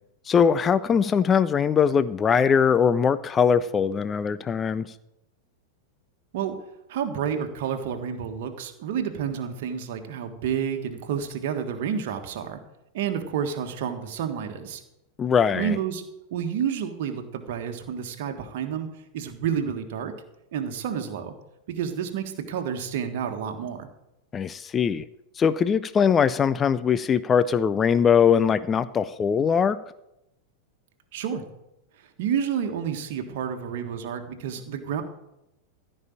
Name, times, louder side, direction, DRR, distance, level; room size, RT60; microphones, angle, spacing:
voice 1, 0.3-4.9 15.2-15.8 24.3-25.0 25.4-29.8, left 7 dB, 20° left, 15 dB, 0.5 m, -21 dB
voice 2, 6.9-12.6 12.9-14.8 15.5-16.0 16.3-18.9 19.1-20.1 20.5-21.3 21.7-23.9 31.1-31.4 32.0-35.0, right 8 dB, 50° right, 5 dB, 1.5 m, -30 dB
14.5 x 5.5 x 8.6 m, 0.89 s
figure-of-eight pair, 90°, 0 cm